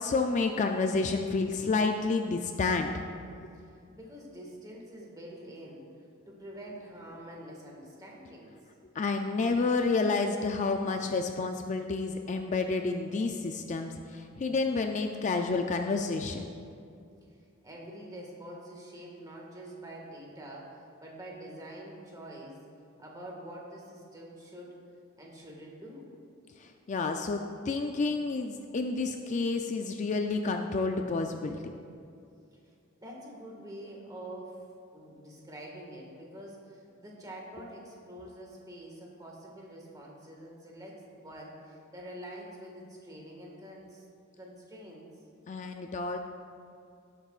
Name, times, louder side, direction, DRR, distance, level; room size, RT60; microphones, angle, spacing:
voice 1, 0.0-3.1 3.4-3.5 9.0-16.5 26.6-31.7 45.5-46.2, left 3 dB, 35° left, 5 dB, 0.4 m, -30 dB
voice 2, 3.5-8.6 11.0-11.1 17.4-22.6 23.0-24.8 25.2-26.1 32.5-32.6 33.0-34.6 34.9-44.1 44.4-45.1, right 1 dB, 20° right, -2 dB, 1.7 m, -46 dB
17.0 x 8.1 x 2.4 m, 2.4 s
head